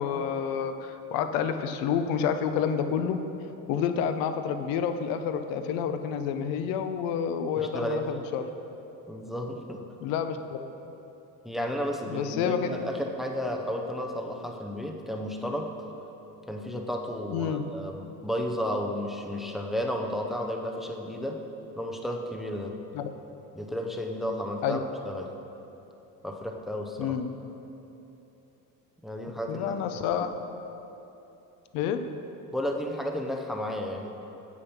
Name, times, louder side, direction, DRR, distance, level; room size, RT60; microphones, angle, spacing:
voice 1, 0.0-3.2 3.7-8.5 10.0-10.6 12.1-12.7 17.3-17.6 22.9-23.0 24.6-24.8 27.0-27.3 29.5-30.3 31.7-32.1, left 7 dB, 70° left, 8 dB, 0.8 m, -29 dB
voice 2, 7.6-8.0 9.1-9.8 11.4-15.7 16.5-21.4 21.8-22.8 23.5-25.3 26.2-27.2 29.0-29.8 32.5-34.1, equal, ahead, 2 dB, 0.5 m, -32 dB
8.6 x 8.4 x 5.8 m, 3.0 s
cardioid pair, 160°, 36 cm